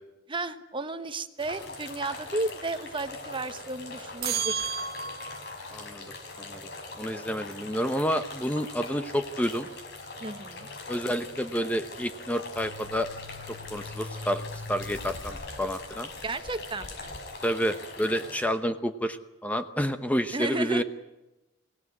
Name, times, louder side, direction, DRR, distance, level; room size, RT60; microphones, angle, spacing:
voice 1, 0.3-4.6 10.2-10.7 16.2-17.1 20.3-20.8, right 2 dB, 25° right, 10 dB, 1.2 m, -33 dB
sound 1, 1.4-18.5, left 3 dB, 60° left, 5.7 m, -42 dB
sound 2, 4.2-5.6, right 7 dB, 50° right, 1.0 m, -32 dB
voice 2, 5.7-6.7 7.0-9.7 10.9-13.1 13.7-14.4 14.7-16.1 17.4-20.8, equal, 10° left, 8 dB, 0.9 m, -29 dB
sound 3, 12.5-17.2 17.6-17.7, left 2 dB, 80° left, 5.7 m, -43 dB
24.0 x 17.5 x 9.6 m, 1.0 s
head